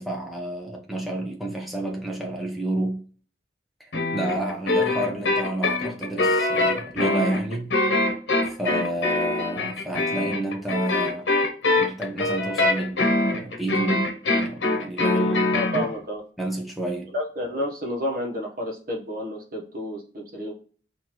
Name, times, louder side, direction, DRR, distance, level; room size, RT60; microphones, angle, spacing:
voice 1, 0.0-3.0 3.8-7.8 8.5-11.3 11.8-15.6 16.4-17.1, right 1 dB, ahead, 0.8 m, -30 dB
sound 1, 3.9-15.9, left 2 dB, 85° left, 0.9 m, -23 dB
voice 2, 15.5-16.2 17.1-20.5, left 1 dB, 50° right, 1.1 m, -30 dB
4.3 x 2.8 x 3.0 m
head